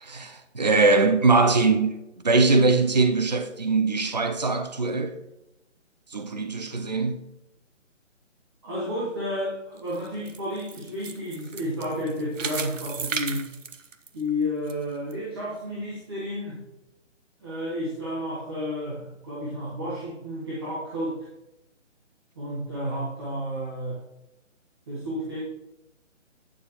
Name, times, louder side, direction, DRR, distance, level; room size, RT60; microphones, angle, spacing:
voice 1, 0.0-5.1 6.1-7.2, right 3 dB, 35° right, 0.5 m, -22 dB
voice 2, 8.6-13.5 14.1-16.6 17.4-21.3 22.4-24.0 24.9-25.4, equal, 20° right, 1.1 m, -31 dB
sound 1, 9.8-14.7 15.1-15.2 15.8-15.9, right 6 dB, 80° right, 0.9 m, -35 dB
9.2 x 7.1 x 3.0 m
hypercardioid pair, 170°, 38 cm